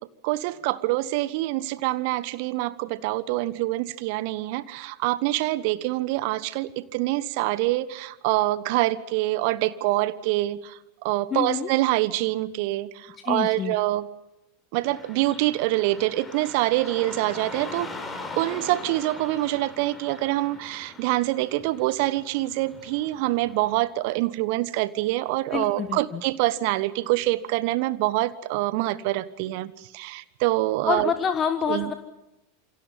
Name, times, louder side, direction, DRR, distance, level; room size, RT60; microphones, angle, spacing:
voice 1, 0.2-14.1 14.7-17.9 18.4-31.1 31.7-31.9, right 17 dB, 50° right, 17 dB, 1.3 m, -25 dB
voice 2, 11.3-11.7 13.2-13.7 25.5-26.2 30.8-31.9, left 7 dB, 25° left, 8 dB, 1.5 m, -27 dB
Car passing by / Traffic noise roadway noise, 14.8-23.9, left 2 dB, 10° left, 6.0 m, -41 dB
28.0 x 26.0 x 5.7 m, 0.95 s
figure-of-eight pair, 85°, 0 cm